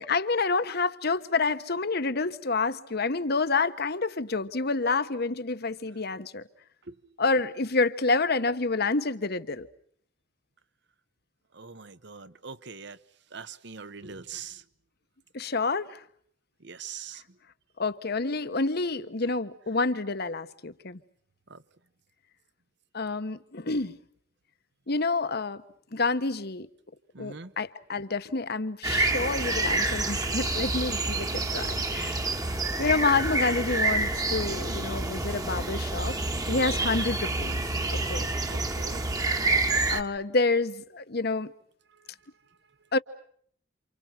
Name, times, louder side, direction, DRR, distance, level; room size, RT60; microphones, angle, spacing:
voice 1, 0.0-6.4 7.2-9.7 15.3-16.0 17.8-21.0 22.9-24.0 24.9-25.6 25.9-26.7 27.2-36.2 36.5-37.6 37.9-38.3 39.9-41.5 42.9-43.0, left 3 dB, 55° left, 1.3 m, -28 dB
voice 2, 11.5-13.0 13.3-14.6 16.6-17.2 21.5-21.6 27.1-27.5 30.2-30.5 38.5-39.0, right 5 dB, 65° right, 1.2 m, -42 dB
sound 1, 28.8-40.0, right 2 dB, 20° right, 1.4 m, -28 dB
29.0 x 28.5 x 6.0 m
head